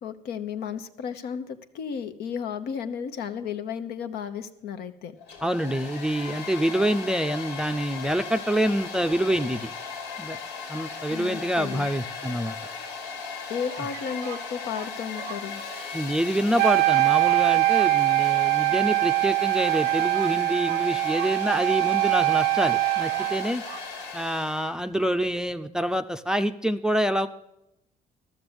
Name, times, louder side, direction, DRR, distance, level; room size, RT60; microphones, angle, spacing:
voice 1, 0.0-5.1 11.1-11.9 13.5-15.6, left 7 dB, 70° left, 9 dB, 1.0 m, -33 dB
Domestic sounds home sounds, 5.2-24.7, left 5 dB, 85° left, 2.0 m, -37 dB
voice 2, 5.4-9.7 10.2-10.4 10.7-12.6 15.9-23.6 24.1-27.3, equal, 5° right, 8 dB, 0.5 m, -26 dB
sound 1, 12.2-13.0 13.7-16.0 16.3-16.4 16.6-17.4 17.7-18.7 19.2-19.3 19.6-21.9 22.2-22.3 22.5-23.4 23.6-23.9, right 13 dB, 85° right, 0.8 m, -44 dB
Wind instrument woodwind instrument, 16.6-23.5, right 20 dB, 70° right, 0.4 m, -23 dB
13.0 x 6.8 x 7.9 m, 0.85 s
cardioid pair, 110°, 17 cm